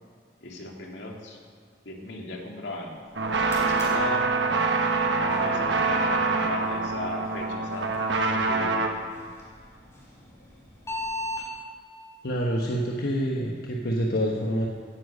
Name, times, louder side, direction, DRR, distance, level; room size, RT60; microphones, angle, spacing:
voice 1, 0.4-1.4 1.8-3.0 3.6-4.3 5.2-8.9, left 2 dB, 75° left, 0 dB, 2.2 m, -37 dB
sound 1, 3.0-11.5, left 1 dB, 15° left, 3.7 m, -41 dB
sound 2, 3.2-8.9, right 3 dB, 70° right, 1.2 m, -25 dB
voice 2, 12.2-14.7, equal, 55° left, -1 dB, 1.2 m, -27 dB
16.5 x 10.0 x 5.3 m, 2.1 s
head